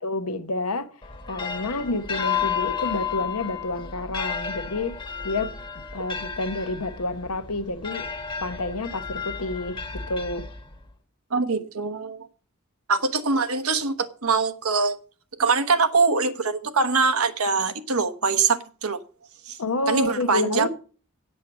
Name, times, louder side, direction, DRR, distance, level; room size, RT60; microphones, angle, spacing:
voice 1, 0.0-0.9 1.3-5.0 5.2-8.1 8.4-10.5 19.6-20.7, left 2 dB, 75° left, 1.0 m, -29 dB
sound 1, 1.0-10.9, left 7 dB, 20° left, 1.3 m, -32 dB
voice 2, 11.3-12.3 12.9-14.9 15.4-19.0 19.5-19.6 19.9-20.7, right 4 dB, 70° right, 1.2 m, -23 dB
8.4 x 8.4 x 6.2 m
head